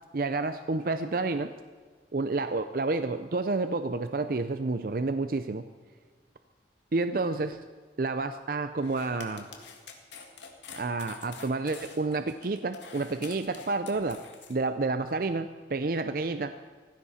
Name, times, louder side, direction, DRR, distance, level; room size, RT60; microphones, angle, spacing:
voice 1, 0.1-1.5 2.1-5.7 6.9-7.6 8.0-9.5 10.8-14.2 14.5-16.5, right 3 dB, 50° right, 10 dB, 0.5 m, -29 dB
sound 1, 8.8-14.5, left 5 dB, 85° left, 2.0 m, -47 dB
18.0 x 15.5 x 4.2 m, 1.5 s
head